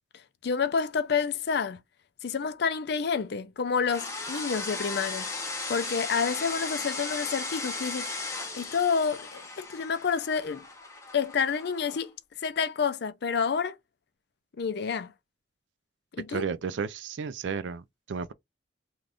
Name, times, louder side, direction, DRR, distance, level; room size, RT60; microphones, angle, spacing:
voice 1, 0.4-1.8 2.2-5.3 5.7-8.1 8.5-10.7 11.1-12.1 12.4-13.8 14.6-15.1 16.2-16.4, left 6 dB, 60° left, 0.4 m, -29 dB
sound 1, 3.9-12.0, left 3 dB, 15° left, 0.7 m, -36 dB
voice 2, 16.3-18.3, right 6 dB, 70° right, 0.4 m, -33 dB
2.6 x 2.4 x 3.4 m
head